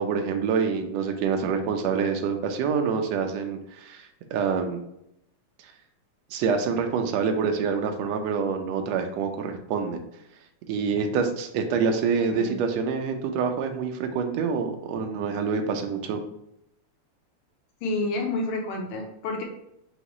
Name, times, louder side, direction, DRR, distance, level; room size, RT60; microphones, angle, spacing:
voice 1, 0.0-4.8 6.3-10.0 10.7-16.2, right 5 dB, 80° right, 5 dB, 1.6 m, -26 dB
voice 2, 17.8-19.4, left 2 dB, 80° left, 1 dB, 2.1 m, -29 dB
5.3 x 2.8 x 3.0 m, 0.79 s
omnidirectional pair, 3.5 m